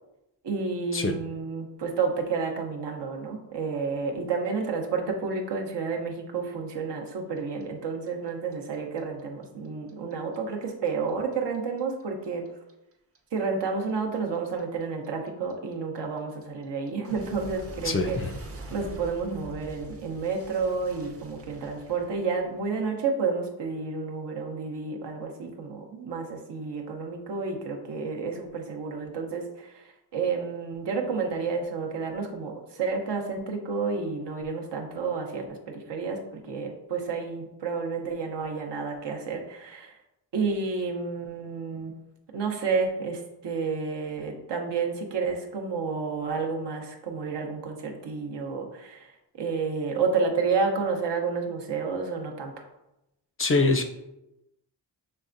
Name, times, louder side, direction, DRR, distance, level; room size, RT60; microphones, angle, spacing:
voice 1, 0.4-12.5 13.3-18.2 18.7-40.0 40.3-41.9 42.3-52.7, right 4 dB, 75° right, 2 dB, 0.9 m, -30 dB
Clock, 7.4-10.4 10.6-13.6 13.9-22.7, right 2 dB, 35° right, 0.7 m, -44 dB
voice 2, 17.8-18.3 53.4-53.8, left 3 dB, 30° left, 6 dB, 0.4 m, -24 dB
5.6 x 3.3 x 2.6 m, 0.91 s
cardioid pair, 80°, 42 cm